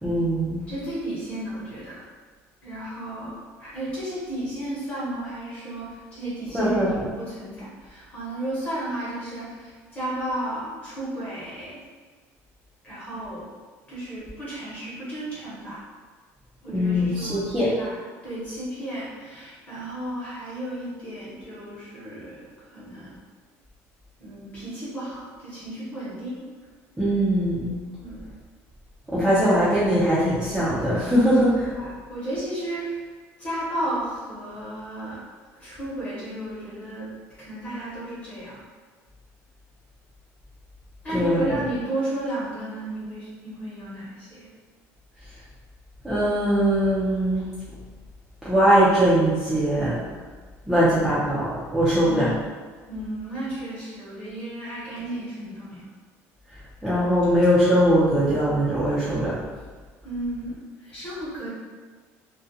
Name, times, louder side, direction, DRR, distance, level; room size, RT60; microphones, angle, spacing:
voice 1, 0.0-0.6 6.5-7.1 16.7-17.7 27.0-27.7 29.1-31.7 41.1-41.5 46.0-47.4 48.4-50.0 50.7-52.3 56.8-59.4, equal, 5° right, -11 dB, 0.4 m, -21 dB
voice 2, 0.7-2.0 2.6-11.7 12.8-13.5 13.9-15.8 16.6-23.1 24.2-26.4 28.0-28.2 31.7-33.1 33.4-35.2 35.6-37.1 37.4-38.6 41.0-44.5 50.7-51.3 52.0-52.5 52.9-55.9 60.0-61.5, right 1 dB, 20° left, -9 dB, 0.9 m, -33 dB
2.4 x 2.1 x 2.6 m, 1.4 s
cardioid pair, 175°, 6 cm